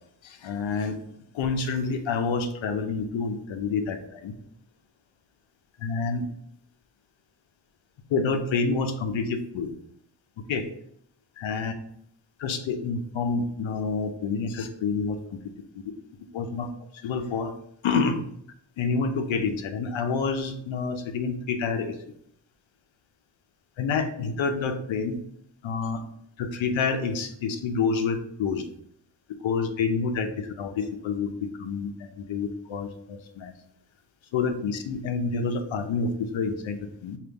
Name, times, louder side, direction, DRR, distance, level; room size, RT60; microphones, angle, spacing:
voice 1, 0.2-1.0 1.3-4.3 5.8-6.2 8.1-9.7 10.5-10.7 11.4-11.7 12.4-15.2 16.3-16.7 17.0-17.5 17.8-18.2 18.8-21.9 23.8-25.2 25.6-26.0 26.4-28.6 29.4-33.5 34.3-37.2, left 4 dB, 85° left, 7 dB, 0.7 m, -28 dB
5.2 x 2.5 x 3.5 m, 0.72 s
wide cardioid pair, 110°, 45 cm